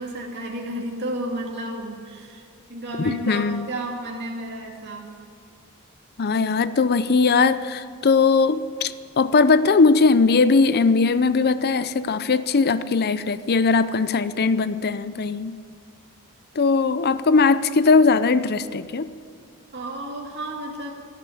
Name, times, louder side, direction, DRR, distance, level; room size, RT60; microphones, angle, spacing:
voice 1, 0.0-5.1 19.7-20.9, right 1 dB, 50° right, -1 dB, 2.5 m, -32 dB
voice 2, 3.0-3.7 6.2-15.6 16.6-19.1, left 4 dB, 45° left, 14 dB, 0.5 m, -19 dB
13.0 x 12.0 x 9.3 m, 2.3 s
head